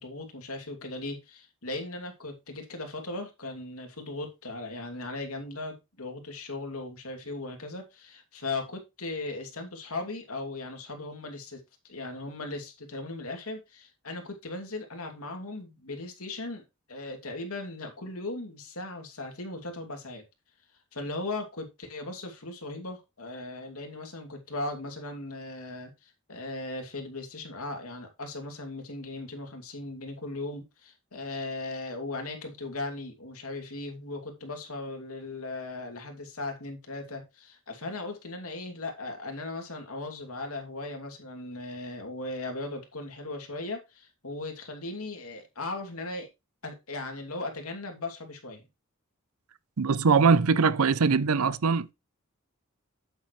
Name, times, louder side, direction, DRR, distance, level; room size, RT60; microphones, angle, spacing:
voice 1, 0.0-11.6 11.8-16.6 16.9-20.2 20.9-46.3 46.6-48.6, left 2 dB, 85° left, 2.7 m, -38 dB
voice 2, 49.8-51.9, right 5 dB, 85° right, 0.6 m, -22 dB
8.8 x 8.0 x 3.2 m
head